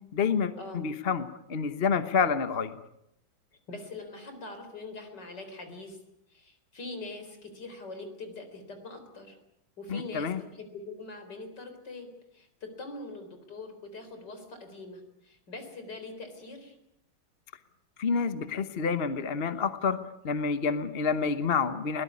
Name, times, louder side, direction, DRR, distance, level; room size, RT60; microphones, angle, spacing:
voice 1, 0.1-2.7 9.9-10.4 18.0-22.0, left 5 dB, 40° left, 11 dB, 1.0 m, -28 dB
voice 2, 3.7-6.0 6.3-9.4 9.8-16.8, left 3 dB, 55° left, 7 dB, 4.6 m, -43 dB
22.0 x 18.5 x 9.6 m, 0.81 s
omnidirectional pair, 2.2 m